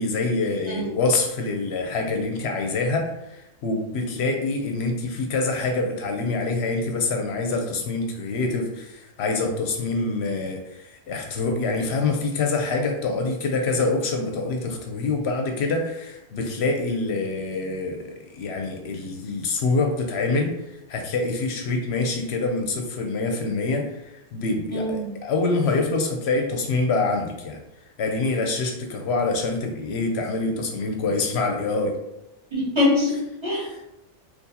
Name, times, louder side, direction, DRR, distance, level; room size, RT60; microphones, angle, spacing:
voice 1, 0.0-20.5 20.9-27.6 28.0-32.0 33.5-33.8, left 3 dB, 70° left, 3 dB, 0.8 m, -26 dB
voice 2, 24.7-25.1 32.5-33.7, left 2 dB, 25° right, -7 dB, 1.2 m, -23 dB
3.8 x 2.5 x 2.7 m, 0.88 s
omnidirectional pair, 1.2 m